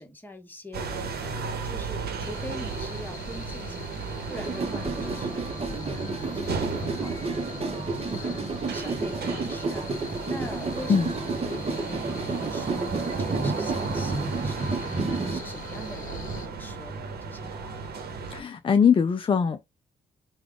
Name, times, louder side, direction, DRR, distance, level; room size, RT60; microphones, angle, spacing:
voice 1, 0.0-5.5 5.8-7.9 8.2-14.7 15.0-17.8, left 1 dB, 10° left, 1.3 m, -43 dB
sound 1, 0.7-18.4, right 4 dB, 65° right, 1.0 m, -35 dB
sound 2, 2.2-16.5, left 4 dB, 50° left, 1.0 m, -43 dB
sound 3, 4.3-15.4, right 3 dB, 35° right, 0.9 m, -31 dB
voice 2, 18.3-19.7, left 6 dB, 30° left, 0.4 m, -21 dB
3.4 x 2.3 x 3.5 m
supercardioid pair, 55°, 17 cm